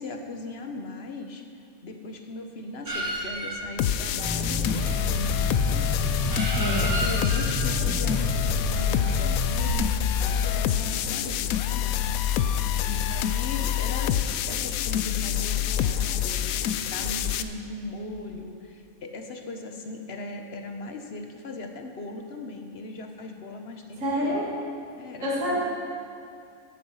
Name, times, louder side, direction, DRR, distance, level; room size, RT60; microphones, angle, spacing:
voice 1, 0.0-1.4 1.8-14.2 14.5-24.4 25.0-25.6, left 2 dB, 50° left, 4 dB, 1.1 m, -38 dB
sound 1, 2.8-9.8, right 2 dB, 75° right, 2.6 m, -34 dB
sound 2, 3.8-17.4, left 10 dB, 75° left, 1.0 m, -26 dB
sound 3, 4.2-9.4, right 1 dB, 10° right, 1.5 m, -31 dB
voice 2, 6.6-6.9 12.6-12.9 24.0-24.4 25.2-25.6, equal, 60° right, -6 dB, 2.6 m, -28 dB
14.5 x 7.9 x 5.6 m, 2.4 s
omnidirectional pair, 1.5 m